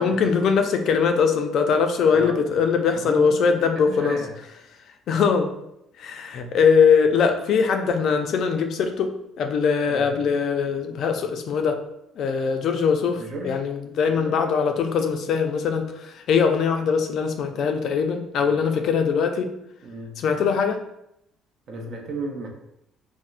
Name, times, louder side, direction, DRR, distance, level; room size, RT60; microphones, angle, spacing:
voice 1, 0.0-4.2 5.1-5.5 6.0-11.8 12.2-19.5 20.2-20.8, left 6 dB, 55° left, 5 dB, 0.3 m, -21 dB
voice 2, 2.1-2.4 2.9-4.3 9.8-10.3 13.2-13.6 14.0-14.4 19.8-20.2 21.7-22.5, right 2 dB, 50° right, 2 dB, 0.6 m, -34 dB
4.2 x 2.0 x 2.4 m, 0.80 s
cardioid pair, 135°, 0 cm